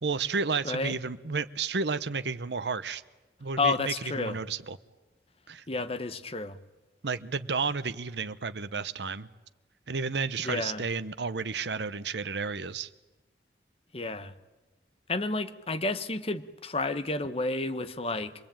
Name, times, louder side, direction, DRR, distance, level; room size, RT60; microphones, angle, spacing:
voice 1, 0.0-3.0 3.4-4.8 5.5-5.6 7.0-9.3 9.9-12.9, right 5 dB, 75° right, 0.9 m, -32 dB
voice 2, 3.6-4.4 5.7-6.6 10.4-10.8 13.9-14.3 15.1-18.3, left 3 dB, 35° left, 1.1 m, -31 dB
26.5 x 20.5 x 8.9 m
head